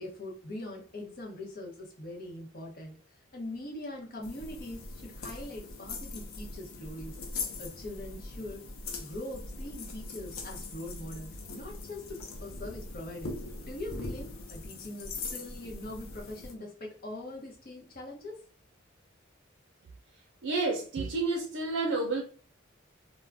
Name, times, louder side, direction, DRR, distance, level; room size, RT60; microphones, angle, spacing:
voice 1, 0.0-2.9 3.3-7.1 7.6-8.6 9.0-18.4, left 1 dB, 45° left, 0.8 m, -42 dB
sound 1, 4.2-16.5, left 3 dB, 85° left, 0.5 m, -41 dB
voice 2, 20.4-22.2, right 3 dB, 75° right, 0.5 m, -30 dB
2.3 x 2.1 x 3.3 m
head